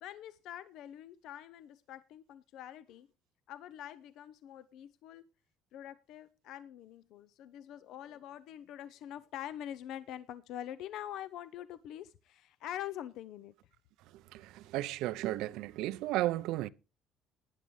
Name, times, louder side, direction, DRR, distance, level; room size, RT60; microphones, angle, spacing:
voice 1, 0.0-3.1 3.5-5.2 5.7-13.5, left 11 dB, 70° left, 0.6 m, -45 dB
voice 2, 14.3-16.7, right 15 dB, 80° right, 0.5 m, -34 dB
18.0 x 10.0 x 3.1 m
cardioid pair, 120°, 0 cm